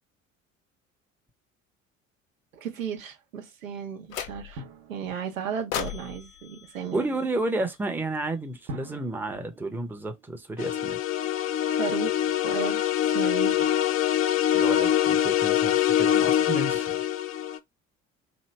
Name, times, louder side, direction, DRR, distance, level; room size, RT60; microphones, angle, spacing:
voice 1, 2.5-4.6 4.9-7.0 11.7-13.7, right 8 dB, 80° right, 0.8 m, -35 dB
sound 1, 4.1-4.8 5.7-7.9, left 9 dB, 80° left, 0.6 m, -37 dB
Drum, 4.6-6.1 8.7-10.8, equal, 60° right, 1.0 m, -44 dB
voice 2, 6.9-11.0 14.5-17.0, right 2 dB, 5° right, 0.7 m, -31 dB
sound 2, 10.6-17.6, left 11 dB, 35° left, 0.5 m, -24 dB
3.0 x 2.7 x 3.1 m
figure-of-eight pair, 60°, 39 cm